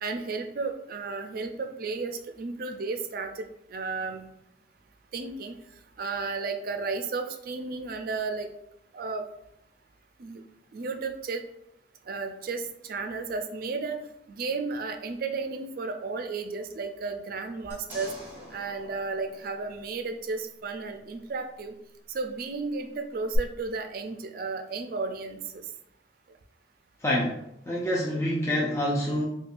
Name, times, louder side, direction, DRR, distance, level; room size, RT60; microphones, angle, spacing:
voice 1, 0.0-4.3 5.1-5.6 6.0-8.5 8.9-9.2 10.2-10.4 10.7-11.4 12.1-14.0 14.3-18.1 18.5-21.7 22.1-25.7, right 4 dB, 55° right, 6 dB, 0.4 m, -33 dB
sound 1, 17.7-20.2 23.3-23.4, equal, 10° right, 1.1 m, -45 dB
voice 2, 27.0-27.4 27.7-29.2, left 1 dB, 15° left, -4 dB, 0.4 m, -26 dB
4.4 x 2.3 x 2.5 m, 0.79 s
head